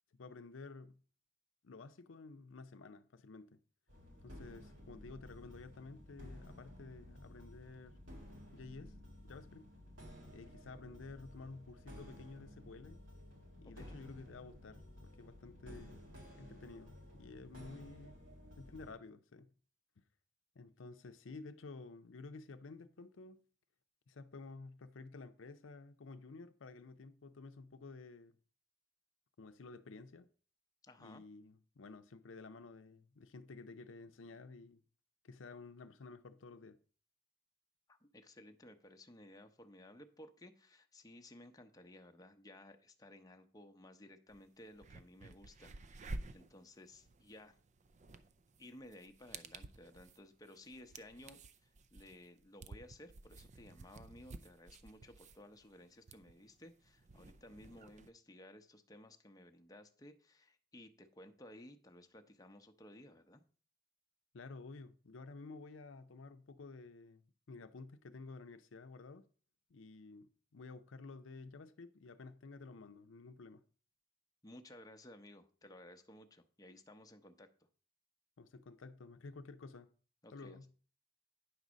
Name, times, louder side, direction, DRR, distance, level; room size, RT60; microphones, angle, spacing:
voice 1, 0.1-1.0 1.6-3.6 4.2-8.0 8.5-8.9 9.2-9.7 10.3-13.0 13.6-16.0 16.4-18.2 18.6-19.5 20.6-23.4 24.1-28.4 29.4-30.3 31.0-34.8 35.2-36.8 64.3-69.3 69.7-73.6 78.4-79.9 80.3-80.7, left 3 dB, 85° left, 0.6 m, -52 dB
sound 1, 3.9-18.9, left 1 dB, 90° right, 4.0 m, -54 dB
voice 2, 13.6-14.0 30.8-31.2 37.9-47.6 48.6-63.4 74.4-77.5 80.2-80.6, left 1 dB, 20° left, 0.7 m, -57 dB
sound 2, 44.3-44.4 44.7-58.1, right 2 dB, 40° right, 0.5 m, -52 dB
9.5 x 4.0 x 6.2 m
head